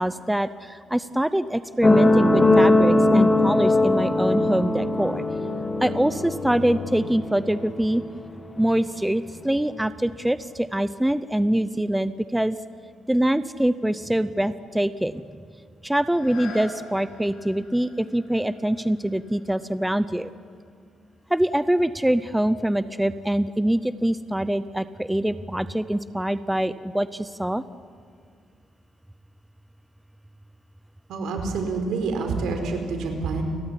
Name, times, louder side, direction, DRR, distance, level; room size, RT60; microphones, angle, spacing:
voice 1, 0.0-5.2 5.8-8.0 8.6-12.6 13.1-15.4 15.8-20.3 21.3-27.6, right 1 dB, 5° right, 14 dB, 0.6 m, -24 dB
sound 1, 1.8-8.9 9.7-9.8, left 2 dB, 20° left, 2.2 m, -21 dB
sound 2, 16.0-21.7 22.2-22.3, left 2 dB, 85° left, 7.6 m, -46 dB
voice 2, 31.1-33.4, right 4 dB, 80° right, 5 dB, 4.5 m, -27 dB
30.0 x 14.5 x 10.0 m, 2.2 s
cardioid pair, 115°, 0 cm